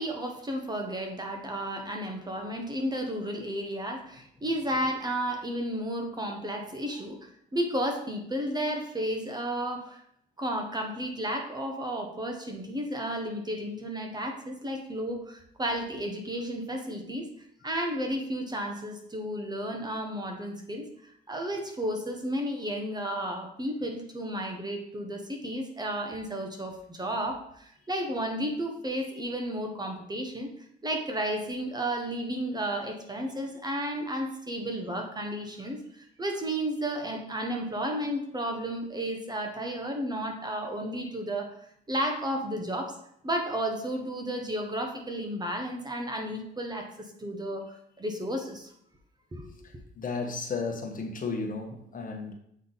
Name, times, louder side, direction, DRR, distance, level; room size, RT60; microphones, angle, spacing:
voice 1, 0.0-10.0 10.4-17.3 17.6-30.5 30.8-41.5 41.9-43.0 43.2-47.6 48.0-48.7 49.3-49.4, right 1 dB, 20° right, 3 dB, 1.1 m, -33 dB
voice 2, 49.6-52.3, left 4 dB, 45° left, 3 dB, 1.2 m, -34 dB
7.6 x 3.5 x 4.1 m, 0.69 s
cardioid pair, 90°, 20 cm